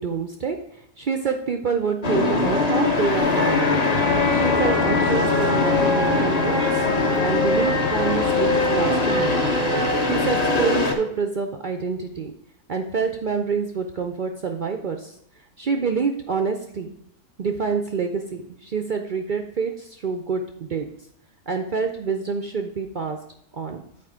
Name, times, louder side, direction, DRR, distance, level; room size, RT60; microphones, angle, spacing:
voice 1, 0.0-3.8 4.3-6.8 7.2-9.5 10.0-12.3 12.7-15.1 15.6-16.9 17.4-20.9 21.5-23.2 23.5-23.8, right 5 dB, 65° right, 5 dB, 0.4 m, -27 dB
sound 1, 2.0-10.9, left 3 dB, 30° left, 0.8 m, -21 dB
sound 2, 3.2-10.6, left 9 dB, 70° left, 0.9 m, -35 dB
8.3 x 4.4 x 4.8 m, 0.74 s
omnidirectional pair, 1.6 m